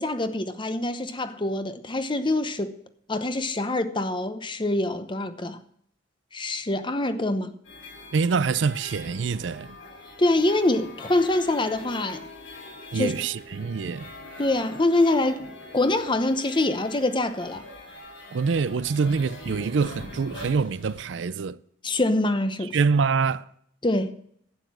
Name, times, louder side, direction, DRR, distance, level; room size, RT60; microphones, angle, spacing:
voice 1, 0.0-2.8 3.1-5.6 6.3-7.5 10.2-12.3 12.9-13.1 14.4-17.7 21.8-22.8 23.8-24.1, left 2 dB, 25° left, 0.9 m, -25 dB
sound 1, 7.6-21.0, left 1 dB, 80° left, 4.8 m, -43 dB
voice 2, 8.1-9.8 12.9-14.1 18.3-21.6 22.7-23.5, right 5 dB, 65° right, 0.4 m, -25 dB
11.5 x 9.2 x 6.1 m
head